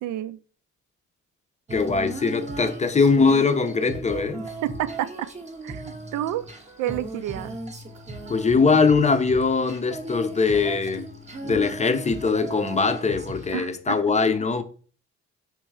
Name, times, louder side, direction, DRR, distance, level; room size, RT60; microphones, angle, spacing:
voice 1, 0.0-0.4 4.6-5.3 5.6-6.4 6.8-7.6 13.5-14.2, right 13 dB, 85° right, 0.5 m, -30 dB
voice 2, 1.7-4.5 8.3-11.1 11.4-14.6, left 4 dB, 25° left, 0.6 m, -21 dB
Female singing, 1.7-13.6, right 2 dB, 20° right, 0.8 m, -37 dB
3.4 x 3.1 x 4.7 m
cardioid pair, 90°, 30 cm